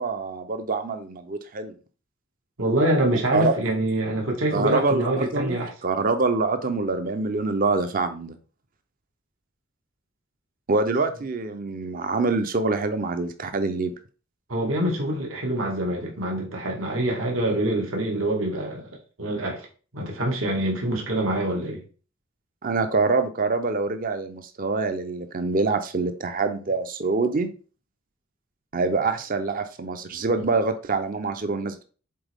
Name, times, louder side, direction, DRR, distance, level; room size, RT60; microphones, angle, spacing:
voice 1, 0.0-1.7 3.1-3.5 4.5-8.4 10.7-13.9 22.6-27.5 28.7-31.8, right 3 dB, 45° right, 8 dB, 0.6 m, -25 dB
voice 2, 2.6-5.7 14.5-18.9 19.2-19.7 19.9-21.8, right 1 dB, 80° right, 0 dB, 1.8 m, -25 dB
7.7 x 4.0 x 3.5 m, 0.38 s
head